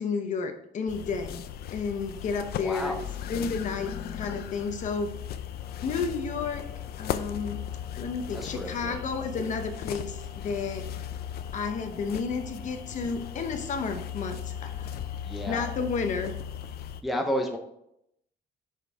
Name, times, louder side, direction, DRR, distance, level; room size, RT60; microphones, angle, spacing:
voice 1, 0.0-1.4 1.7-3.0 3.3-5.1 5.8-6.7 7.0-7.6 7.9-10.9 11.5-14.9 15.5-16.3, left 5 dB, 40° left, 7 dB, 0.9 m, -31 dB
sound 1, 0.9-17.0, left 10 dB, 60° left, 0.5 m, -37 dB
voice 2, 2.6-3.0 8.3-9.0 15.2-15.7 17.0-17.6, equal, ahead, 2 dB, 0.6 m, -31 dB
sound 2, 5.6-16.0, left 1 dB, 25° left, 1.2 m, -54 dB
6.4 x 5.4 x 4.7 m, 0.77 s
cardioid pair, 180°, 18 cm